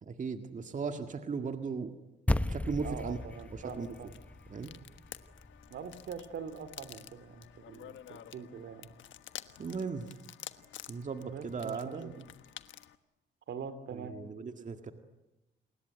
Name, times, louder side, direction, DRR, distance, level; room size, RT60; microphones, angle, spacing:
voice 1, 0.0-1.9 2.5-3.2 3.5-3.9 4.5-4.7 9.6-10.1 10.9-12.1 13.9-14.9, right 5 dB, 40° right, 7 dB, 2.0 m, -37 dB
sound 1, 2.3-6.8, left 1 dB, 5° left, 1.0 m, -36 dB
voice 2, 2.8-4.1 5.7-8.9 11.2-12.2 13.5-14.1, right 6 dB, 65° right, 12 dB, 2.5 m, -43 dB
sound 2, 3.1-13.0, left 11 dB, 70° left, 1.3 m, -51 dB
29.5 x 20.5 x 9.2 m, 0.99 s
cardioid pair, 90°, 20 cm